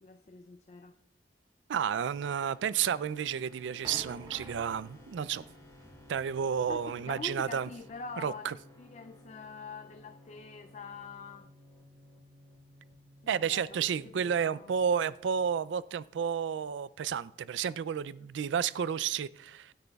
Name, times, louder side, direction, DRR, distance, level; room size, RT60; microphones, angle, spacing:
voice 1, 0.0-0.9 6.7-11.5 13.2-14.7, left 4 dB, 40° left, 0.4 m, -45 dB
voice 2, 1.7-5.4 6.1-7.7 8.2-8.6 13.3-19.7, right 7 dB, 85° right, 0.3 m, -31 dB
sound 1, 2.1-15.7, left 1 dB, 20° left, 4.3 m, -57 dB
sound 2, 3.1-8.0, right 1 dB, 25° right, 1.1 m, -52 dB
26.0 x 9.1 x 2.3 m
head